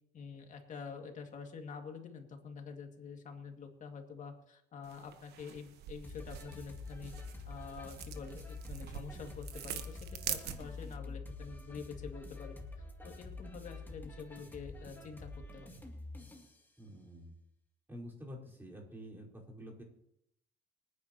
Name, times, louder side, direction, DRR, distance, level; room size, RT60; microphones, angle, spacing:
voice 1, 0.1-7.1 7.5-10.0 10.3-12.6 13.0-15.7, left 5 dB, 50° left, 4 dB, 2.1 m, -47 dB
sound 1, 4.8-11.0, right 10 dB, 75° right, 1.2 m, -45 dB
sound 2, 6.0-16.6, left 3 dB, 10° left, 2.4 m, -47 dB
voice 2, 16.8-17.3 17.9-19.8, equal, 10° right, -4 dB, 4.4 m, -48 dB
25.5 x 9.6 x 2.9 m, 0.79 s
cardioid pair, 110°, 17 cm